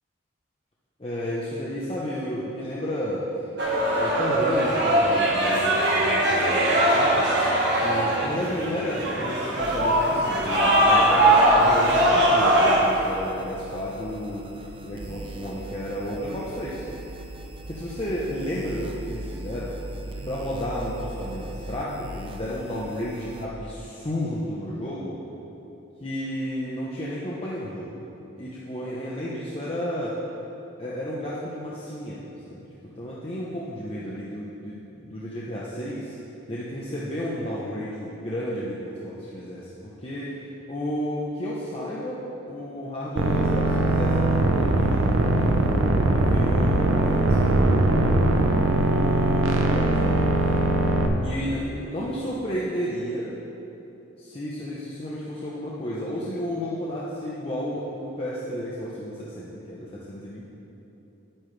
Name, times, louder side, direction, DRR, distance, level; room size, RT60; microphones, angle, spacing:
voice 1, 1.0-3.3 4.0-7.3 7.8-16.8 17.7-19.7 20.1-25.2 26.0-28.0 28.4-30.2 30.8-36.1 36.5-40.3 40.7-48.2 48.6-50.2 51.2-53.3 54.2-60.4, equal, 30° left, -7 dB, 0.7 m, -32 dB
sound 1, 3.6-12.8, right 1 dB, 55° right, 1.4 m, -21 dB
sound 2, 9.6-23.5, right 1 dB, 25° right, 0.5 m, -40 dB
sound 3, 43.2-51.1, right 2 dB, 75° right, 0.7 m, -21 dB
9.6 x 8.6 x 3.3 m, 3.0 s
head